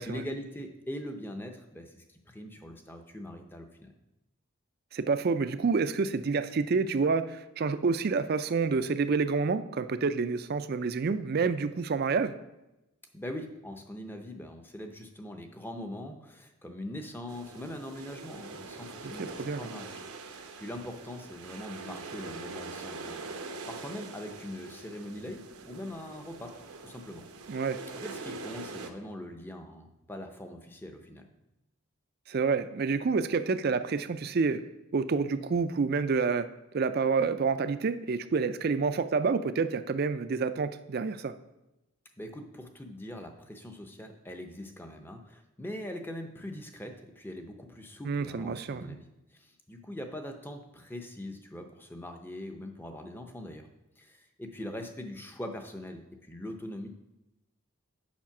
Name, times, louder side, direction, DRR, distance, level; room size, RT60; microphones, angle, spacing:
voice 1, 0.0-3.9 13.1-20.0 20.6-26.5 26.8-27.2 27.9-31.2 42.2-49.0 49.3-53.7 54.0-56.9, left 1 dB, 10° left, 5 dB, 0.6 m, -42 dB
voice 2, 4.9-12.4 19.0-19.7 27.5-27.8 32.3-34.6 34.9-36.5 36.7-41.3 48.0-49.0, right 4 dB, 45° right, 11 dB, 0.4 m, -28 dB
sound 1, 17.3-28.9, right 3 dB, 90° right, 0.8 m, -43 dB
7.3 x 5.1 x 5.8 m, 0.96 s
head